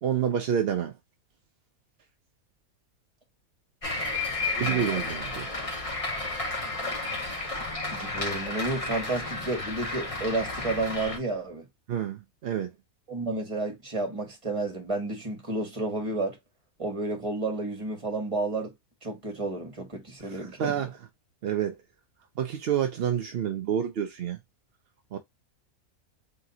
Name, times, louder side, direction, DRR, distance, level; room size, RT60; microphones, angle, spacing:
voice 1, 0.0-0.9 4.6-5.5 11.9-12.7 20.2-20.9 21.4-21.8 22.4-24.4 25.1-25.2, right 9 dB, 60° right, 0.6 m, -28 dB
sound 1, 3.8-11.2, left 2 dB, 25° left, 1.6 m, -32 dB
voice 2, 4.6-5.1 7.9-11.7 13.1-16.4 16.8-18.7 19.0-20.7, right 2 dB, 20° right, 1.9 m, -31 dB
4.0 x 3.7 x 2.7 m
omnidirectional pair, 1.5 m